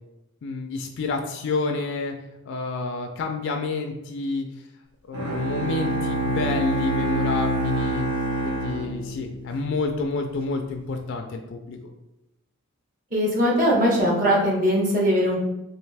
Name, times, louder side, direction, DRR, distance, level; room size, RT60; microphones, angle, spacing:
voice 1, 0.4-2.1 2.5-4.5 5.1-8.0 8.4-11.8, left 3 dB, 60° left, 4 dB, 0.3 m, -29 dB
Bowed string instrument, 5.1-9.6, right 1 dB, 85° right, 1.2 m, -26 dB
voice 2, 13.1-15.4, equal, 40° right, -4 dB, 1.1 m, -20 dB
3.1 x 2.7 x 3.3 m, 0.92 s
head